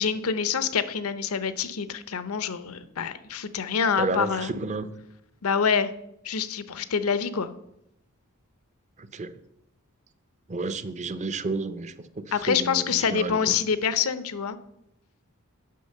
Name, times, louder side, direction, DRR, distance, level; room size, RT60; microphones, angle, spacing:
voice 1, 0.0-4.5 5.4-5.9 6.2-7.5 12.3-14.6, left 6 dB, 80° left, 13 dB, 0.7 m, -26 dB
voice 2, 4.0-4.8 9.1-9.3 10.5-12.8 13.1-13.4, right 3 dB, 35° right, 13 dB, 0.6 m, -31 dB
9.3 x 5.9 x 6.6 m, 0.82 s
head